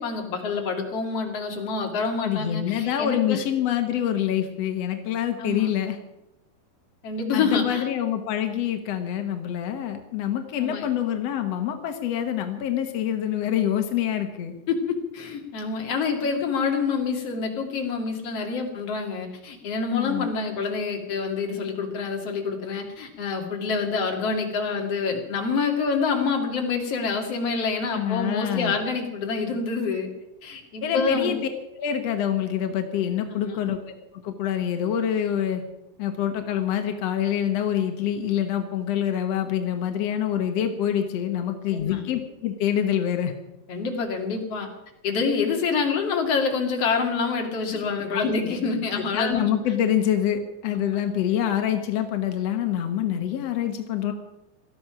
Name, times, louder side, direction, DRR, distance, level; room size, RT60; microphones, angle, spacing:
voice 1, 0.0-3.4 5.4-5.7 7.0-7.9 10.6-10.9 14.7-30.1 30.4-31.3 33.3-33.6 41.7-42.0 43.7-44.7 45.0-49.4, left 5 dB, 40° left, 2 dB, 2.9 m, -27 dB
voice 2, 2.2-6.0 7.3-14.5 19.9-20.3 27.9-28.7 30.8-31.4 31.8-35.6 36.0-43.3 47.7-47.8 48.1-48.2 49.1-54.1, left 10 dB, 75° left, 6 dB, 1.5 m, -26 dB
18.5 x 13.5 x 6.0 m, 0.91 s
omnidirectional pair, 4.8 m